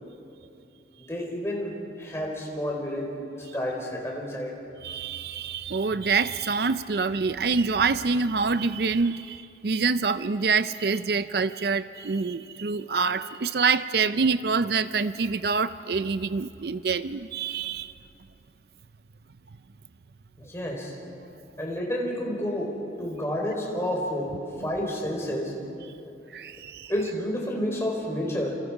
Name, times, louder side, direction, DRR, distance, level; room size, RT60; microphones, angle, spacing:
voice 1, 1.0-4.6 20.4-21.0 21.6-25.6 26.9-28.6, equal, 15° left, -1 dB, 4.5 m, -30 dB
voice 2, 4.8-17.9 26.3-26.9, right 4 dB, 65° right, 13 dB, 0.5 m, -26 dB
28.5 x 28.0 x 5.0 m, 2.8 s
head